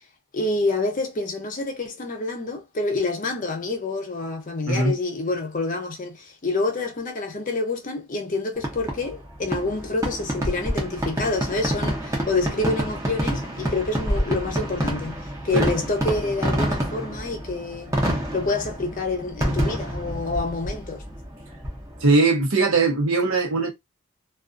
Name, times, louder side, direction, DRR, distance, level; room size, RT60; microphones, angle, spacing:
voice 1, 0.3-17.9 18.3-21.0, left 3 dB, 35° left, 0.5 m, -27 dB
Fireworks, 8.6-22.1, right 1 dB, 15° right, 0.7 m, -28 dB
voice 2, 22.0-23.7, right 3 dB, 75° right, 0.8 m, -20 dB
2.3 x 2.3 x 2.4 m
head